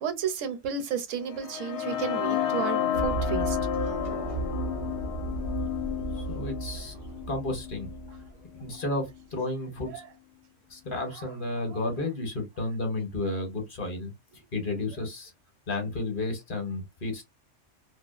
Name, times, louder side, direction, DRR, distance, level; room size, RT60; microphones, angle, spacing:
voice 1, 0.0-3.6 6.1-6.2 9.9-10.0 11.7-11.8, right 7 dB, 75° right, 0.9 m, -32 dB
sound 1, 1.3-9.2, left 10 dB, 70° left, 0.8 m, -32 dB
sound 2, 2.9-8.9, right 4 dB, 55° right, 0.4 m, -35 dB
voice 2, 6.1-6.9 7.3-7.9 8.6-9.9 10.7-14.1 14.5-15.3 15.7-17.3, left 2 dB, 45° left, 1.0 m, -32 dB
2.4 x 2.3 x 2.3 m
omnidirectional pair, 1.3 m